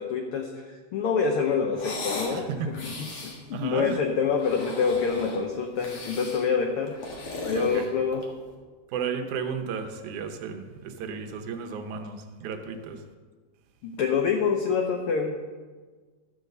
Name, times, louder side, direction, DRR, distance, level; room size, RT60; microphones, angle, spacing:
voice 1, 0.0-2.5 2.8-3.1 3.5-7.0 7.4-8.3 13.8-15.6, left 5 dB, 85° left, 4 dB, 1.2 m, -26 dB
sound 1, 1.7-2.4 2.7-3.4 4.3-5.4 5.8-6.5 6.9-8.4, left 2 dB, 50° left, 2.4 m, -37 dB
voice 2, 2.3-3.2 3.5-4.0 7.5-7.9 8.9-13.0, right 6 dB, 80° right, 5 dB, 2.3 m, -34 dB
13.5 x 5.3 x 6.5 m, 1.4 s
omnidirectional pair, 3.4 m